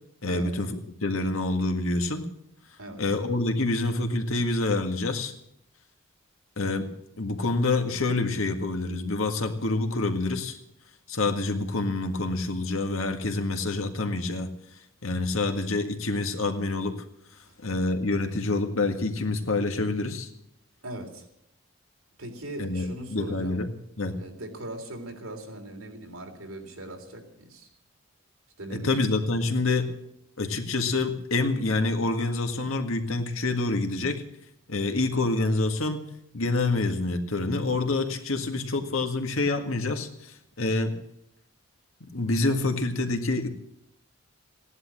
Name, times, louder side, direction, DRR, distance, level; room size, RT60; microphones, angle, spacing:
voice 1, 0.2-2.3 3.0-5.3 6.6-10.6 11.1-14.5 15.0-17.0 17.6-20.3 22.6-23.7 24.0-24.2 28.7-30.1 30.4-34.2 34.7-36.0 36.3-40.9 42.0-43.5, left 2 dB, 80° left, 5 dB, 1.8 m, -27 dB
voice 2, 20.8-21.3 22.2-23.6 24.2-27.7 28.6-29.0, right 1 dB, 90° right, 2 dB, 3.4 m, -39 dB
16.5 x 11.0 x 7.5 m, 0.77 s
head